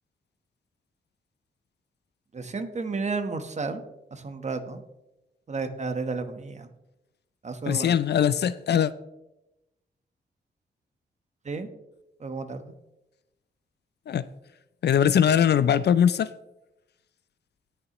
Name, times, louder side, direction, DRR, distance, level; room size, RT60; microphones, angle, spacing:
voice 1, 2.3-3.8 4.1-4.8 5.5-6.7 7.4-8.0 11.4-11.7 12.2-12.7, right 4 dB, 40° right, 1.1 m, -32 dB
voice 2, 7.7-8.9 14.1-14.2 14.8-16.3, left 8 dB, 65° left, 0.4 m, -21 dB
18.5 x 6.8 x 3.0 m
wide cardioid pair, 100°, 19 cm